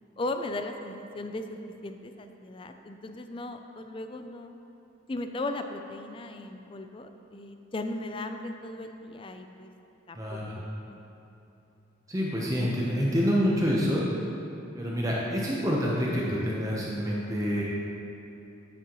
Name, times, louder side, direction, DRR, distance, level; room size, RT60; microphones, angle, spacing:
voice 1, 0.2-4.6 5.1-9.7 10.1-11.0, left 2 dB, 25° left, 6 dB, 0.4 m, -37 dB
voice 2, 10.1-10.5 12.1-14.0 14.7-17.6, equal, 15° right, -5 dB, 0.8 m, -27 dB
9.1 x 9.0 x 3.0 m, 2.9 s
head